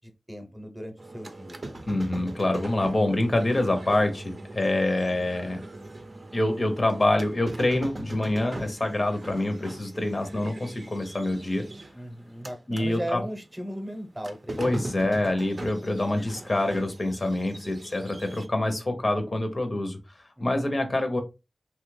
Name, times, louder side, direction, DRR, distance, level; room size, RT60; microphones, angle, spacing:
voice 1, 0.3-1.6 11.9-15.1 20.4-20.5, equal, 20° right, 0.8 m, -37 dB
sound 1, 1.0-12.9 13.2-18.5, right 2 dB, 50° right, 0.5 m, -41 dB
voice 2, 1.9-5.6 6.3-11.7 12.7-13.2 14.6-20.0 20.4-21.2, left 1 dB, 50° left, 0.7 m, -26 dB
3.0 x 2.3 x 3.1 m
wide cardioid pair, 55°, 0 cm